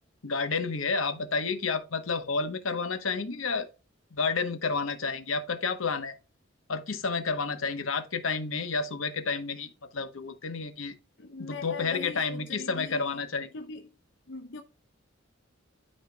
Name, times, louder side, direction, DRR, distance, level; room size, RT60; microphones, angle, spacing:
voice 1, 0.2-3.7 4.1-6.2 6.7-11.0 11.4-13.5, left 4 dB, 85° left, 1.0 m, -30 dB
voice 2, 11.2-13.2 13.5-13.9 14.3-14.6, left 3 dB, 60° left, 0.7 m, -41 dB
12.5 x 4.3 x 2.2 m
head